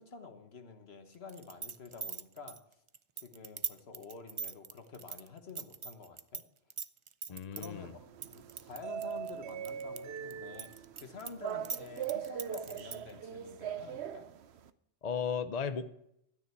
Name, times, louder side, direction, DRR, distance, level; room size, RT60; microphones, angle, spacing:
voice 1, 0.0-2.6 3.2-6.4 7.3-8.1 8.3-14.3, left 4 dB, 65° left, 6 dB, 1.5 m, -49 dB
sound 1, 1.3-6.4 6.7-7.7 8.2-10.0 10.3-13.1, right 6 dB, 45° right, 0.4 m, -40 dB
voice 2, 7.3-7.9 15.0-15.9, left 6 dB, 45° left, 10 dB, 0.6 m, -35 dB
sound 2, 7.7-14.7, right 9 dB, 75° right, 0.9 m, -41 dB
13.0 x 9.6 x 4.6 m, 0.77 s
omnidirectional pair, 1.1 m